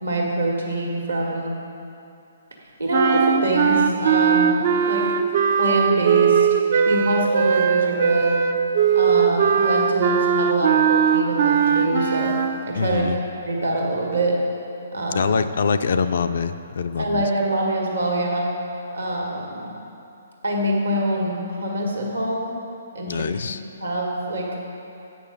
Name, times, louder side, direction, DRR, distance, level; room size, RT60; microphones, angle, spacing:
voice 1, 0.0-1.6 2.8-4.6 4.9-5.2 5.6-6.5 6.8-8.5 8.9-12.3 12.7-13.0 13.5-14.4 14.9-15.4 17.0-18.5 18.9-19.7 20.4-22.5 22.9-24.7, right 1 dB, 75° right, -1 dB, 1.6 m, -24 dB
sound 1, 2.9-12.6, right 7 dB, 45° right, 0.4 m, -19 dB
voice 2, 12.7-13.2 15.1-17.3 23.1-23.6, left 5 dB, 55° left, 10 dB, 0.3 m, -24 dB
8.3 x 6.2 x 5.2 m, 2.7 s
figure-of-eight pair, 125°, 0 cm